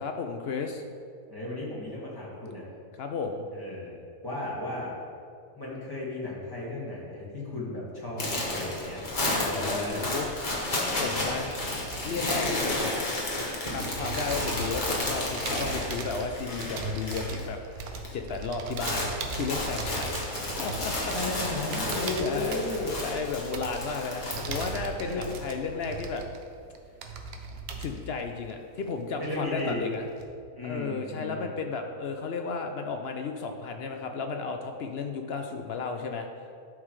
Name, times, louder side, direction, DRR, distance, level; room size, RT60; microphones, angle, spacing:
voice 1, 0.0-0.8 3.0-3.5 9.5-10.3 10.9-11.6 12.0-12.9 13.7-20.1 20.6-21.1 21.6-21.7 22.2-22.7 23.0-26.2 27.8-30.0 30.6-36.3, left 4 dB, 65° left, 5 dB, 0.6 m, -34 dB
voice 2, 1.3-2.7 3.5-4.9 5.5-10.1 21.1-22.9 25.0-25.2 29.2-29.8 30.5-31.6, left 2 dB, 15° left, -6 dB, 1.9 m, -35 dB
sound 1, 8.2-17.5 17.7-18.1 18.4-25.4, left 2 dB, 35° left, 1.4 m, -32 dB
sound 2, 10.9-13.2 13.6-29.3 29.6-30.2, right 4 dB, 85° right, 1.2 m, -39 dB
11.0 x 6.1 x 3.2 m, 2.3 s
omnidirectional pair, 1.5 m